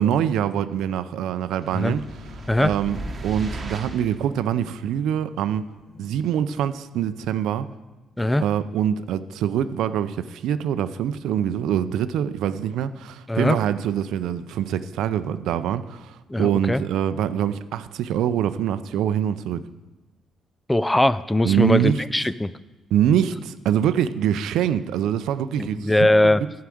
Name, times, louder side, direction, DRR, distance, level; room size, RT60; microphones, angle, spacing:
voice 1, 0.0-2.0 2.6-3.0 3.2-5.6 6.0-7.7 8.4-19.6 21.4-22.0 22.9-26.3, right 9 dB, 85° right, 13 dB, 0.5 m, -24 dB
sound 1, 1.6-7.0, left 4 dB, 80° left, 2.9 m, -46 dB
sound 2, 1.6-4.2, right 2 dB, 30° right, 1.1 m, -36 dB
voice 2, 16.3-16.8 20.7-22.5 25.6-26.4, left 1 dB, 10° left, 16 dB, 0.3 m, -20 dB
11.5 x 4.8 x 7.8 m, 1.1 s
cardioid pair, 110°, 0 cm